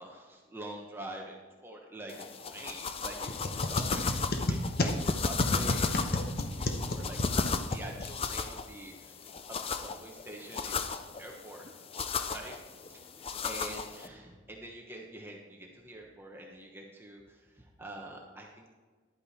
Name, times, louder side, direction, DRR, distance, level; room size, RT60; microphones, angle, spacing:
voice 1, 0.0-9.2 9.5-12.5 12.8-13.0 13.4-18.7, right 1 dB, 10° right, 0 dB, 1.0 m, -46 dB
sound 1, 2.1-14.1, left 4 dB, 30° left, 0.4 m, -35 dB
sound 2, 3.3-8.4, left 1 dB, 45° left, 1.0 m, -33 dB
11.5 x 8.9 x 4.2 m, 1.4 s
head